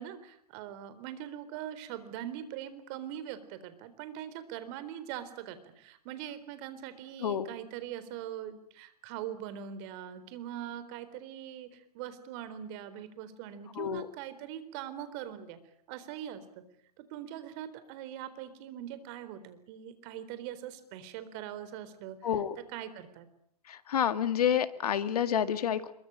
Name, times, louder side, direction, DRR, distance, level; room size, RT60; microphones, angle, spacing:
voice 1, 0.0-15.6 15.9-16.4 17.0-22.2 22.7-23.3, right 10 dB, 45° right, 13 dB, 4.0 m, -42 dB
voice 2, 22.2-22.6 23.7-25.9, left 9 dB, 75° left, 12 dB, 2.1 m, -29 dB
26.0 x 23.0 x 8.9 m, 0.68 s
hypercardioid pair, 120°, 20 cm